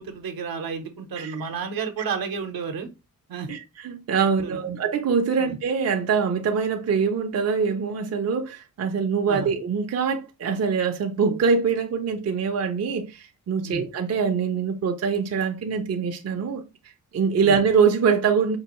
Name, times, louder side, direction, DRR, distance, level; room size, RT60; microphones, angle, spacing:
voice 1, 0.0-2.9 3.3-3.5 4.4-4.7 5.4-5.6 9.3-9.5 13.6-13.8 17.4-17.6, right 5 dB, 75° right, 0.8 m, -32 dB
voice 2, 3.5-16.6 17.1-18.6, right 6 dB, 45° right, 0.5 m, -24 dB
4.5 x 2.4 x 3.0 m
wide cardioid pair, 120°, 36 cm